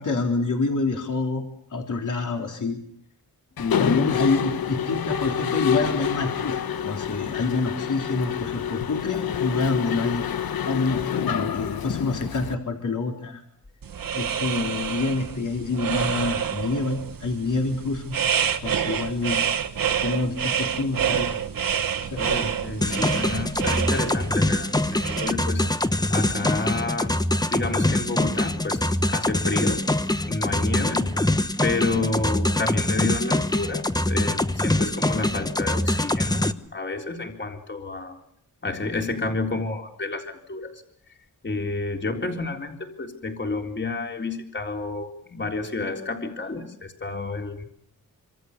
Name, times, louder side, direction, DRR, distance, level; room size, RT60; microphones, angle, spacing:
voice 1, 0.0-1.4 1.7-2.8 3.6-10.2 10.6-13.4 14.1-18.2 18.6-19.5 20.0-21.4 22.1-22.2 22.8-23.1, left 3 dB, 55° left, 2 dB, 3.9 m, -27 dB
Mechanisms, 3.6-12.5, left 8 dB, 75° left, 1.2 m, -27 dB
sound 1, 13.8-25.3, right 8 dB, 65° right, 1.8 m, -28 dB
voice 2, 22.1-25.7 26.1-29.9 30.3-31.2 31.6-38.2 38.6-40.8 41.4-47.6, left 3 dB, 30° left, 3 dB, 4.0 m, -30 dB
sound 2, 22.8-36.5, left 1 dB, 10° left, 1.1 m, -24 dB
26.5 x 26.5 x 6.8 m, 0.67 s
wide cardioid pair, 115°, 36 cm